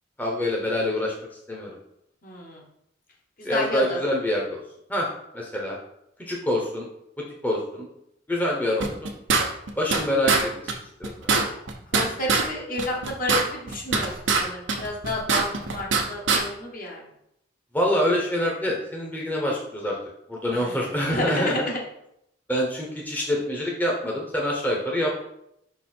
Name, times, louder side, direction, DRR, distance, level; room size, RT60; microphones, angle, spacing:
voice 1, 0.2-1.1 1.5-1.8 3.4-4.6 4.9-5.1 5.3-5.8 6.2-6.9 7.2-7.9 8.3-9.1 9.8-10.7 11.0-11.3 17.7-20.0 20.3-21.5 22.5-25.2, left 1 dB, 10° left, -2 dB, 0.9 m, -26 dB
voice 2, 2.2-2.6 3.4-4.0 11.9-17.0 20.5-20.7 21.1-21.8, left 1 dB, 50° left, -1 dB, 1.3 m, -30 dB
sound 1, 8.8-10.0 10.3-10.4 10.7-10.8 11.0-12.5 12.8-14.4 14.7-16.0 16.3-16.4, right 4 dB, 90° right, 0.9 m, -22 dB
5.6 x 4.1 x 4.3 m, 0.78 s
head